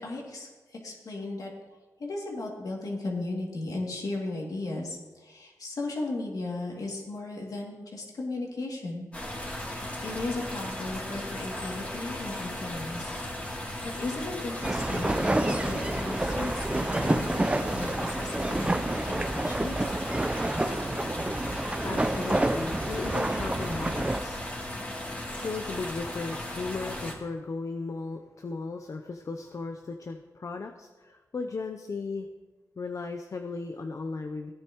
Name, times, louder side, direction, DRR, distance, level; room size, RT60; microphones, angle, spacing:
voice 1, 0.0-1.5 2.0-9.7 10.0-13.1 13.5-19.9, left 2 dB, 70° left, -2 dB, 2.6 m, -36 dB
sound 1, 9.1-27.1, left 1 dB, 20° left, 2.9 m, -36 dB
sound 2, 14.6-24.2, right 1 dB, 15° right, 0.6 m, -29 dB
voice 2, 21.8-24.5 25.3-32.3 32.8-34.5, left 4 dB, 50° left, 4 dB, 0.7 m, -36 dB
16.5 x 9.7 x 3.1 m, 1.2 s
cardioid pair, 65°, 7 cm